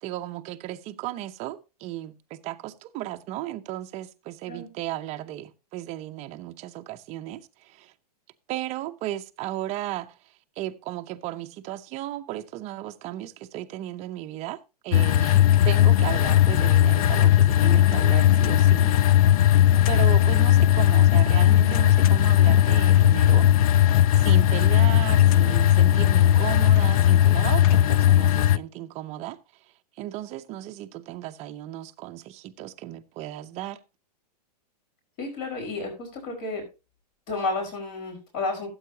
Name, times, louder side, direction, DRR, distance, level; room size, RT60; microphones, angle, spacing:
voice 1, 0.0-7.9 8.5-10.1 10.6-18.9 19.9-23.8 24.1-29.4 30.0-33.8, right 14 dB, 30° right, 0.8 m, -35 dB
sound 1, 14.9-28.6, left 12 dB, 60° left, 0.4 m, -18 dB
voice 2, 35.2-36.6 37.3-38.7, left 3 dB, 45° left, 4.8 m, -31 dB
14.0 x 8.0 x 2.8 m
hypercardioid pair, 125°, 21 cm